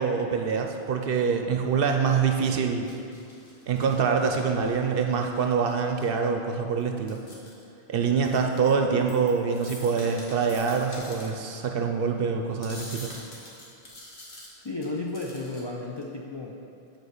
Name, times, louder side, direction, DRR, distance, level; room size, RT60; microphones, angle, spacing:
voice 1, 0.0-2.9 3.7-7.2 7.9-13.1, right 5 dB, 65° right, 4 dB, 0.7 m, -25 dB
sound 1, 2.9-6.2 6.8-7.6 8.1-11.5 12.6-15.6 16.0-16.1, left 1 dB, 85° left, 1.7 m, -46 dB
voice 2, 14.6-16.6, left 2 dB, 35° left, -3 dB, 0.5 m, -33 dB
7.9 x 4.4 x 6.5 m, 2.6 s
omnidirectional pair, 1.1 m